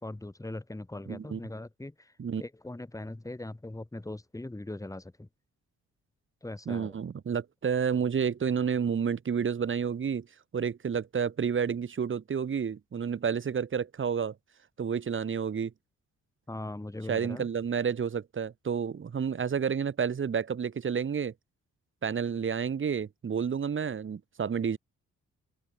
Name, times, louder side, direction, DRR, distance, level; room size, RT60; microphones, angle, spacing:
voice 1, 0.0-5.3 6.4-7.0 16.5-17.5, left 2 dB, 10° left, 2.2 m, -40 dB
voice 2, 1.1-1.4 2.2-2.4 6.7-10.3 10.5-14.3 14.8-15.7 17.1-21.3 22.0-24.8, right 7 dB, 40° right, 1.2 m, -30 dB
open air
cardioid pair, 70°, 31 cm